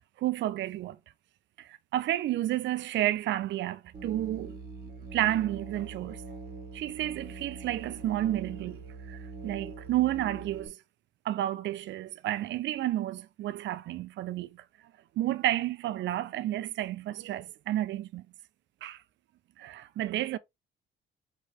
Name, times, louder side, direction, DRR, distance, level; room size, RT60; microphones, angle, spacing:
voice 1, 0.2-1.0 1.6-4.6 5.1-6.2 6.7-8.8 9.1-10.8 11.2-14.6 15.2-18.2 18.8-19.0 19.6-20.4, right 14 dB, 65° right, 0.4 m, -31 dB
Musical instrument, 3.9-10.7, right 4 dB, 50° right, 1.2 m, -43 dB
4.6 x 3.2 x 2.9 m
cardioid pair, 90°, 20 cm